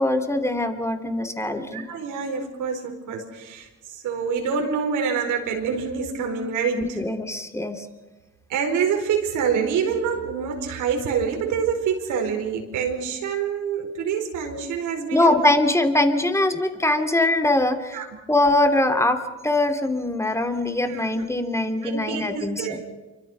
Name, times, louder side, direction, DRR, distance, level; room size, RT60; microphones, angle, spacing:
voice 1, 0.0-1.8 6.8-7.8 15.1-22.8, left 2 dB, 10° left, 7 dB, 2.9 m, -22 dB
voice 2, 1.6-6.8 8.5-15.4 17.9-18.1 20.8-21.0 21.8-22.9, right 6 dB, 90° right, 3 dB, 4.9 m, -26 dB
27.5 x 24.5 x 5.7 m, 1.1 s
cardioid pair, 90°, 30 cm